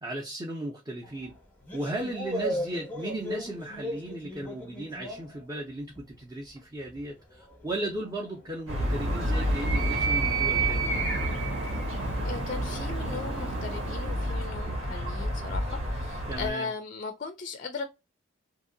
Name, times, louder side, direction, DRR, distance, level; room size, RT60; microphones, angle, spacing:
voice 1, 0.0-1.3 1.7-11.0 16.3-16.7, right 1 dB, 20° right, 0.5 m, -36 dB
sound 1, 1.0-6.2 6.6-15.5, equal, 10° left, 0.8 m, -40 dB
Animal, 8.7-14.5, right 5 dB, 60° right, 0.6 m, -32 dB
sound 2, 8.7-16.5, equal, 85° right, 1.5 m, -31 dB
voice 2, 12.1-17.8, left 4 dB, 40° left, 0.4 m, -37 dB
2.8 x 2.7 x 2.6 m
head